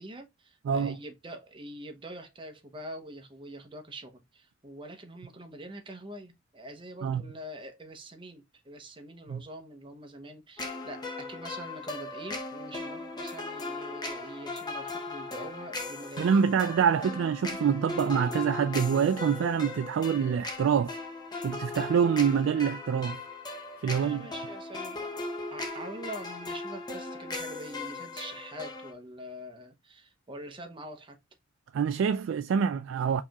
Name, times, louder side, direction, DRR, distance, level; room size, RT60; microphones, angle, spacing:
voice 1, 0.0-16.5 17.0-17.2 23.9-25.2 25.5-31.2, right 1 dB, 25° right, 0.8 m, -44 dB
voice 2, 0.7-1.0 7.0-7.2 9.3-9.4 16.2-21.0 21.4-23.2 23.8-24.3 31.7-33.2, right 7 dB, 75° right, 0.3 m, -26 dB
sound 1, 10.6-28.9, left 2 dB, 20° left, 0.8 m, -38 dB
4.7 x 2.9 x 2.3 m
head